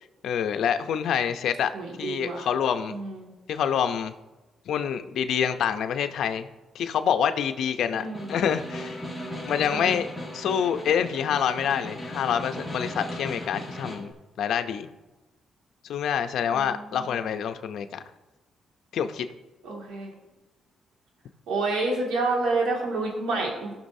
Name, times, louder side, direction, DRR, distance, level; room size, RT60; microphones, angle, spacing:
voice 1, 0.2-1.7 2.0-3.0 3.5-4.1 4.7-6.5 6.7-8.0 8.3-9.0 9.5-10.1 10.3-14.1 14.4-14.9 15.9-18.0 18.9-19.3, left 8 dB, 75° left, 8 dB, 0.6 m, -26 dB
voice 2, 1.7-2.5 2.9-3.3 7.9-8.3 9.7-10.0 16.4-17.3 19.6-20.2 21.5-23.7, right 3 dB, 90° right, -1 dB, 2.1 m, -29 dB
Snare drum, 8.0-14.1, left 1 dB, ahead, 2.1 m, -37 dB
18.0 x 6.1 x 2.7 m, 1.1 s
cardioid pair, 115°, 0 cm